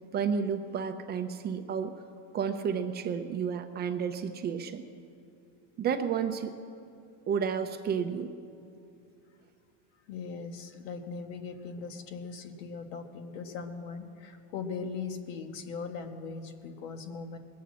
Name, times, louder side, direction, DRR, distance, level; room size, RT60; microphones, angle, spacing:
voice 1, 0.1-1.9 2.3-4.9 5.8-6.5 7.3-8.3, right 7 dB, 25° right, 8 dB, 0.5 m, -31 dB
voice 2, 10.1-17.4, left 5 dB, 70° left, 7 dB, 1.5 m, -39 dB
20.5 x 8.3 x 7.5 m, 2.5 s
supercardioid pair, 150°, 39 cm